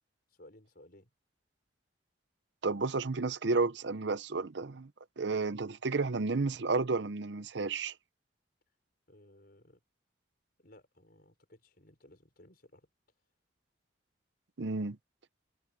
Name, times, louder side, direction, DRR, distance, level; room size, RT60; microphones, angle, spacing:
voice 1, 0.3-1.1 9.1-9.8 10.6-12.9, left 1 dB, 50° left, 5.9 m, -58 dB
voice 2, 2.6-4.9 5.2-7.9 14.6-15.0, right 3 dB, 65° right, 0.7 m, -32 dB
head